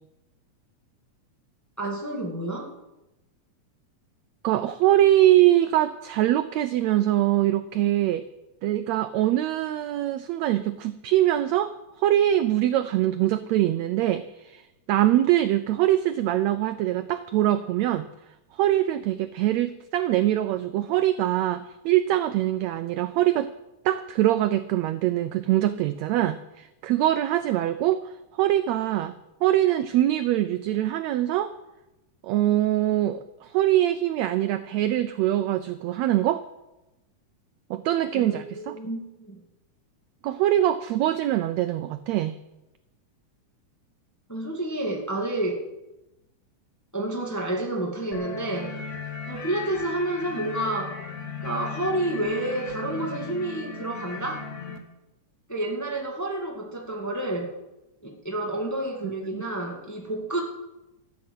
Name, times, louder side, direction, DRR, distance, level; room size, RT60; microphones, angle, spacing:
voice 1, 1.8-2.7 38.1-39.4 44.3-45.6 46.9-48.7 49.3-50.9 51.4-54.4 55.5-57.5 58.0-60.4, right 1 dB, 5° left, 0 dB, 1.4 m, -29 dB
voice 2, 4.4-8.2 8.6-14.6 14.9-18.1 18.5-23.5 23.8-29.1 29.4-31.5 32.2-36.5 37.7-38.8 40.2-42.4 59.3-59.4, right 13 dB, 80° right, 11 dB, 1.6 m, -23 dB
sound 1, 48.1-54.8, left 4 dB, 60° left, 0.7 m, -36 dB
14.5 x 8.6 x 7.9 m, 0.97 s
omnidirectional pair, 3.6 m